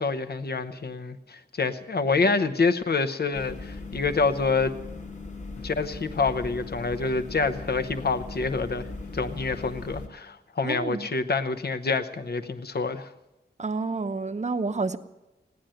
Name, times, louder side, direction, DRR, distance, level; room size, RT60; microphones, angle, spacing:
voice 1, 0.0-4.7 5.6-8.9 9.1-13.1, left 4 dB, 65° left, 0.9 m, -27 dB
sound 1, 3.3-10.1, left 3 dB, 45° left, 1.3 m, -39 dB
voice 2, 10.6-11.1 13.6-15.0, right 3 dB, 40° right, 0.8 m, -29 dB
17.0 x 10.5 x 7.7 m
wide cardioid pair, 85°, 17 cm